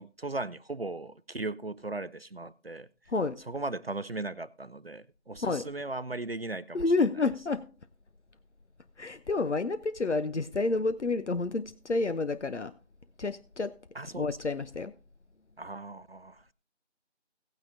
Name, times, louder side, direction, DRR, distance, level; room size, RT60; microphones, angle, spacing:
voice 1, 0.0-3.1 3.4-7.2 13.9-14.4 15.6-16.5, right 2 dB, 60° right, 0.6 m, -38 dB
voice 2, 3.1-3.4 5.4-5.6 6.7-7.7 9.0-12.7 13.2-13.8 14.2-14.9, left 3 dB, 80° left, 0.8 m, -29 dB
17.0 x 9.2 x 2.7 m
figure-of-eight pair, 180°, 34 cm